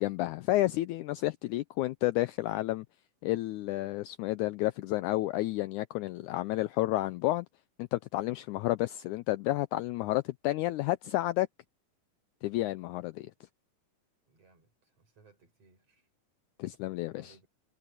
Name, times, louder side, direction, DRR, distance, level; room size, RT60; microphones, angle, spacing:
voice 1, 0.0-2.9 3.2-7.5 7.8-11.5 12.4-13.3 16.6-17.3, left 17 dB, 80° left, 1.8 m, -31 dB
voice 2, 14.3-16.1 16.6-17.5, right 4 dB, 45° right, 6.8 m, -63 dB
omnidirectional pair, 3.9 m